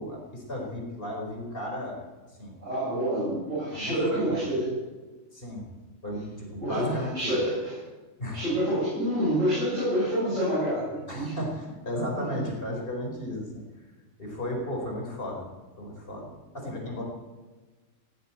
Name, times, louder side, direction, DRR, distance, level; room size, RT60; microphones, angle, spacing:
voice 1, 0.0-2.0 2.4-2.5 3.7-4.3 5.3-5.6 6.0-7.3 8.2-8.4 11.1-13.6 14.2-15.5 15.8-17.0, left 1 dB, 45° left, 0 dB, 5.0 m, -34 dB
voice 2, 2.6-4.8 6.6-7.7 8.3-11.4 12.1-12.4, equal, 75° right, -8 dB, 7.7 m, -28 dB
18.0 x 17.5 x 4.6 m, 1.2 s
omnidirectional pair, 1.3 m